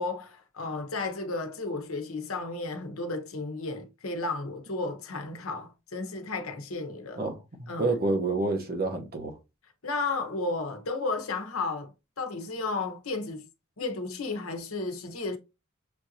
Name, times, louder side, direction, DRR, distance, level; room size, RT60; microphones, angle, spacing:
voice 1, 0.0-7.2 7.7-7.9 9.8-11.9 12.2-13.5 13.8-15.4, left 3 dB, 80° left, 1.0 m, -33 dB
voice 2, 7.2-9.4, right 2 dB, 45° right, 1.0 m, -29 dB
6.7 x 2.6 x 2.8 m
head